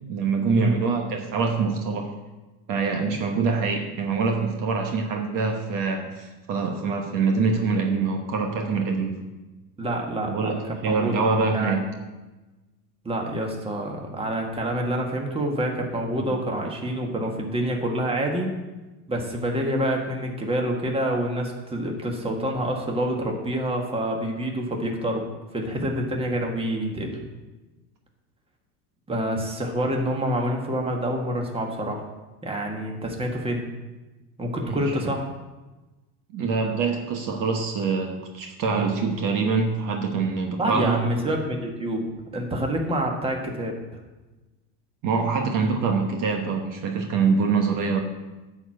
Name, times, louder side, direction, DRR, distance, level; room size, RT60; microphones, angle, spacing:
voice 1, 0.1-2.2 2.7-9.2 10.3-11.9 16.2-16.4 34.7-35.0 36.3-41.0 45.0-48.0, right 4 dB, 45° right, 4 dB, 1.2 m, -25 dB
voice 2, 9.8-11.2 11.5-11.8 13.0-18.6 19.1-25.3 25.5-27.1 29.1-32.1 32.4-33.6 34.4-35.3 40.6-42.0 42.3-43.8, right 1 dB, 15° right, 1 dB, 1.6 m, -27 dB
10.5 x 4.5 x 7.7 m, 1.1 s
supercardioid pair, 120°, 43 cm